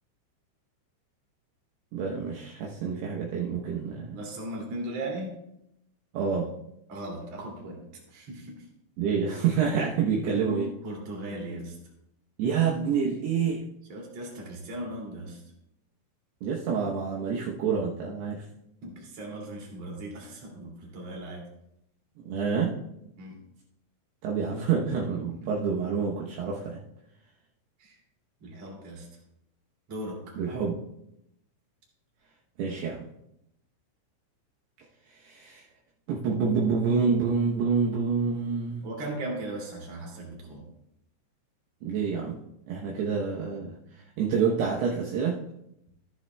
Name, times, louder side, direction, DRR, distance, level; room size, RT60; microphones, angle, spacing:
voice 1, 1.9-4.2 6.1-6.5 9.0-10.7 12.4-13.6 16.4-18.4 22.3-22.8 24.2-26.8 30.4-30.7 32.6-33.0 35.2-35.6 36.1-38.9 41.8-42.4 42.7-43.8 44.2-45.4, right 6 dB, 80° right, -3 dB, 2.4 m, -27 dB
voice 2, 4.1-5.4 6.9-7.8 8.1-8.5 10.3-11.8 13.9-15.4 18.8-21.4 23.2-23.4 27.8-28.0 28.4-29.1 29.9-30.4 38.8-40.6, right 1 dB, 40° right, -1 dB, 2.7 m, -37 dB
14.0 x 10.0 x 2.2 m, 0.81 s
omnidirectional pair, 5.8 m